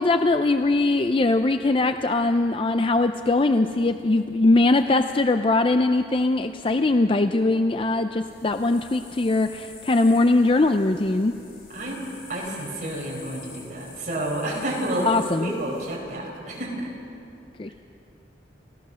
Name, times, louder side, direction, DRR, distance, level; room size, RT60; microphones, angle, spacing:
voice 1, 0.0-11.3 15.0-15.5 17.6-17.7, left 2 dB, 30° left, 8 dB, 0.4 m, -21 dB
sound 1, 8.2-16.0, left 4 dB, 55° left, 7.0 m, -47 dB
voice 2, 11.7-15.0 15.4-16.9, right 1 dB, 45° right, -3 dB, 4.9 m, -30 dB
29.5 x 15.0 x 6.3 m, 2.8 s
head